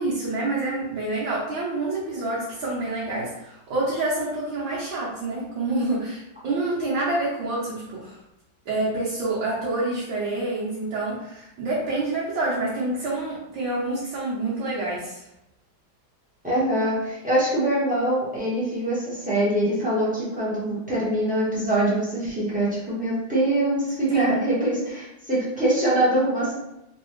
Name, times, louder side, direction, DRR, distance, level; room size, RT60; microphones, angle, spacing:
voice 1, 0.0-8.2 8.7-15.3 24.1-24.4, right 2 dB, 70° right, -7 dB, 1.6 m, -27 dB
voice 2, 16.4-26.5, right 1 dB, 5° right, -9 dB, 1.0 m, -24 dB
3.5 x 3.2 x 3.1 m, 0.86 s
omnidirectional pair, 2.3 m